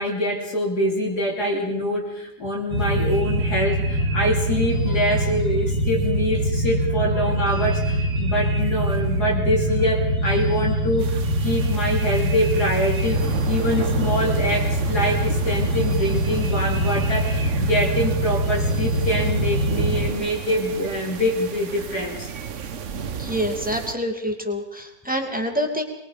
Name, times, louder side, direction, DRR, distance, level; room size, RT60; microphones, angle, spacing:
voice 1, 0.0-22.3, equal, 65° left, -2 dB, 3.5 m, -25 dB
sound 1, 2.7-20.1, right 1 dB, 85° right, 2.7 m, -23 dB
sound 2, 11.0-23.9, right 7 dB, 50° right, 1.2 m, -34 dB
voice 2, 23.2-25.8, equal, 5° right, 3 dB, 2.4 m, -26 dB
24.0 x 22.0 x 5.2 m, 0.86 s
omnidirectional pair, 1.9 m